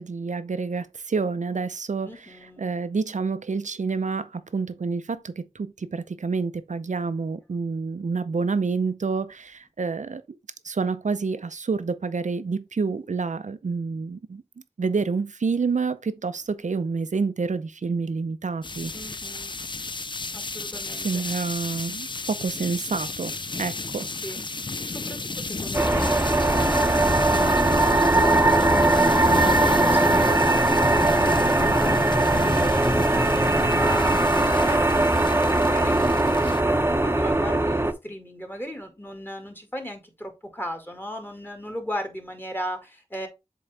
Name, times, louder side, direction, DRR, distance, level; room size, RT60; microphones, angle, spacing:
voice 1, 0.0-10.4 10.6-14.4 14.8-18.9 21.0-23.3 23.6-24.1, right 4 dB, 85° right, 0.6 m, -28 dB
voice 2, 2.0-2.7 18.9-19.5 20.3-21.2 22.4-22.7 24.2-34.9 35.2-43.3, equal, 15° left, 2.0 m, -37 dB
sound 1, 18.6-36.6, left 3 dB, 40° left, 0.5 m, -32 dB
sound 2, 25.7-37.9, right 2 dB, 20° right, 0.8 m, -20 dB
7.3 x 3.9 x 3.3 m
wide cardioid pair, 40°, 12 cm